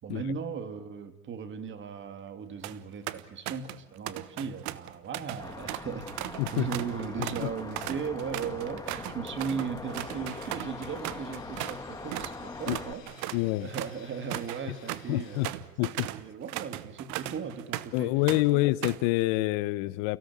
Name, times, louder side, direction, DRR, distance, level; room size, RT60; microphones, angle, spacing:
voice 1, 0.0-15.6 16.1-18.2 18.5-18.6, right 6 dB, 30° right, 2.9 m, -37 dB
sound 1, 2.4-2.8 3.1-3.8 4.1-11.8 12.1-12.4 12.7-18.0 18.3-19.1, right 16 dB, 45° right, 1.3 m, -38 dB
sound 2, 5.4-12.9, left 3 dB, 10° left, 2.4 m, -41 dB
sound 3, 10.0-15.5, left 9 dB, 80° left, 3.1 m, -53 dB
voice 2, 13.3-13.7 15.1-15.5 15.8-16.1 17.9-20.2, left 20 dB, 50° left, 0.9 m, -27 dB
29.5 x 17.0 x 8.6 m
hypercardioid pair, 105°, 39 cm